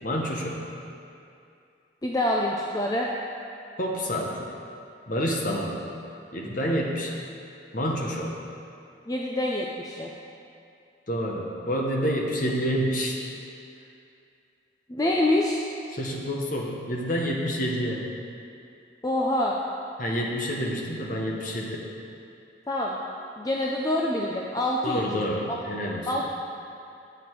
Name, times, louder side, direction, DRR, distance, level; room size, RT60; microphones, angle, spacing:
voice 1, 0.0-0.6 3.8-4.5 5.1-5.9 6.3-7.2 7.7-8.4 11.1-13.2 15.9-18.1 20.0-21.9 24.8-26.3, equal, 45° left, -1 dB, 1.1 m, -28 dB
voice 2, 2.0-3.1 9.1-10.1 14.9-15.6 19.0-19.5 22.7-23.0 23.4-25.6 26.1-26.3, left 1 dB, 20° left, -2 dB, 0.5 m, -26 dB
8.4 x 7.8 x 4.6 m, 2.5 s
head